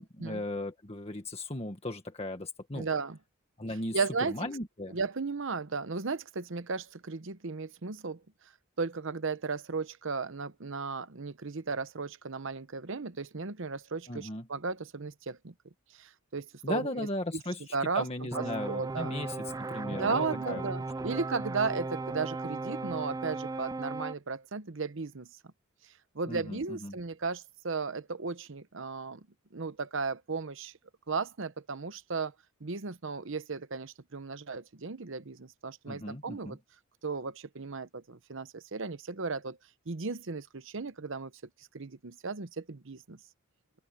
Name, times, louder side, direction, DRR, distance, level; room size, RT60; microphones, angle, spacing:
voice 1, 0.0-2.9 3.6-4.0 4.3-5.0 14.1-14.4 16.6-20.6 26.3-26.9 35.9-36.6, left 1 dB, 30° left, 1.7 m, -37 dB
voice 2, 2.7-3.2 3.9-4.5 4.9-8.2 8.8-15.5 15.9-17.1 17.3-17.4 17.7-19.1 19.9-25.3 26.1-29.3 29.5-30.7 31.1-32.3 32.6-36.6 37.0-39.6 39.9-41.3 41.7-43.2, right 4 dB, 65° right, 0.9 m, -35 dB
sound 1, 18.3-24.1, right 3 dB, 15° right, 0.4 m, -36 dB
open air
head